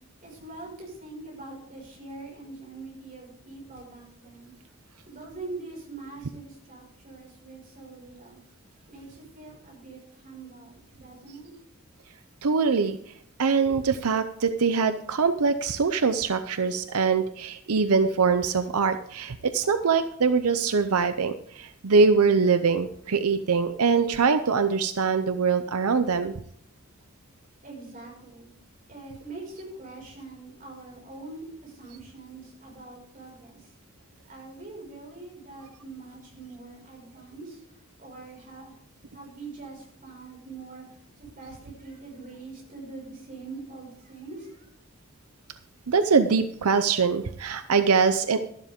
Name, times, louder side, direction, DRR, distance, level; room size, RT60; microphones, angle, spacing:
voice 1, 0.2-4.5 5.1-8.4 8.9-11.5 27.6-28.5 28.9-33.7 34.3-37.6 38.0-38.8 39.1-44.7, right 3 dB, 35° right, -2 dB, 5.7 m, -43 dB
voice 2, 12.4-13.0 13.4-26.3 45.9-48.4, right 5 dB, 90° right, 10 dB, 0.6 m, -23 dB
12.5 x 12.0 x 3.7 m, 0.69 s
head